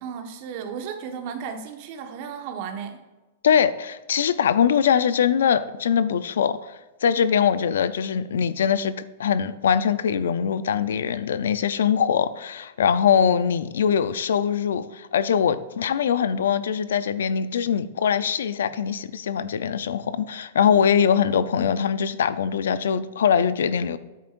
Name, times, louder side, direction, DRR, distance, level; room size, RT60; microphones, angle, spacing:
voice 1, 0.0-3.0, right 7 dB, 50° right, 6 dB, 1.3 m, -34 dB
voice 2, 3.4-6.7 7.0-8.9 9.2-24.0, left 8 dB, 85° left, 14 dB, 0.5 m, -22 dB
9.7 x 8.3 x 2.6 m, 1.1 s
hypercardioid pair, 145°, 0 cm